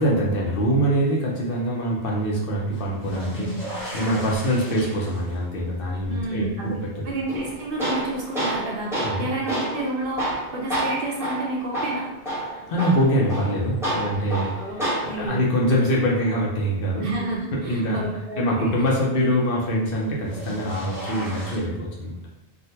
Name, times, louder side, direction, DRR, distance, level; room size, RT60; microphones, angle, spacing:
voice 1, 0.0-7.1 9.0-9.3 12.5-14.6 15.0-17.1 17.5-18.0 18.4-22.2, equal, 60° left, -3 dB, 0.9 m, -24 dB
Old Toilet Flush, 2.7-9.7 10.2-10.9 12.5-12.6 14.1-14.2 19.9-21.6, equal, 20° left, 1.3 m, -37 dB
voice 2, 6.1-6.7 7.0-12.1 14.6-14.8 15.0-15.5 17.0-18.7, right 2 dB, 60° right, -2 dB, 0.8 m, -30 dB
Tools, 7.3-15.3, right 1 dB, 5° right, 0.9 m, -29 dB
3.6 x 2.1 x 2.7 m, 0.89 s
omnidirectional pair, 1.1 m